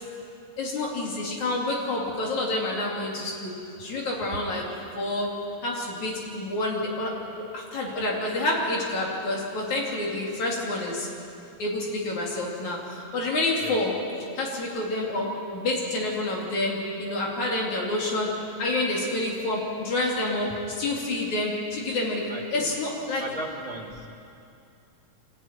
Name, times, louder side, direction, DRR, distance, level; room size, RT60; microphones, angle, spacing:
voice 1, 0.6-3.5 3.8-4.6 5.0-5.3 5.6-7.1 7.5-11.1 11.6-13.9 14.4-18.3 18.6-23.2, left 2 dB, 70° left, -3 dB, 4.2 m, -28 dB
voice 2, 22.3-22.7 23.2-24.1, right 1 dB, 25° right, -1 dB, 2.7 m, -37 dB
25.0 x 13.5 x 9.5 m, 2.6 s
omnidirectional pair, 3.5 m